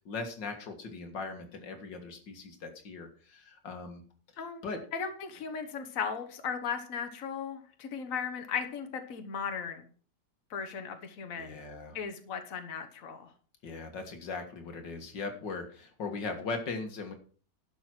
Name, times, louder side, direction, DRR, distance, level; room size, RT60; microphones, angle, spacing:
voice 1, 0.1-4.0 4.3-4.8 11.3-12.0 13.6-17.1, left 4 dB, 85° left, 5 dB, 2.4 m, -39 dB
voice 2, 4.9-9.9 10.5-11.6 11.9-13.3, left 6 dB, 50° left, 6 dB, 1.7 m, -36 dB
11.5 x 7.0 x 6.1 m, 0.43 s
omnidirectional pair, 1.9 m